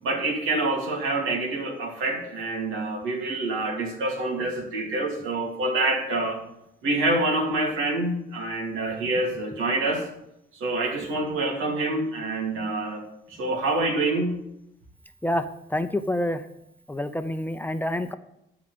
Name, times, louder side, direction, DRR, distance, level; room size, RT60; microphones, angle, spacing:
voice 1, 0.0-6.4 6.8-10.1 10.6-13.0 13.4-14.4, right 2 dB, 85° right, 0 dB, 3.0 m, -26 dB
voice 2, 15.7-16.5 16.9-18.1, left 1 dB, 10° left, 9 dB, 0.8 m, -27 dB
12.5 x 4.9 x 7.9 m, 0.80 s
cardioid pair, 90°, 20 cm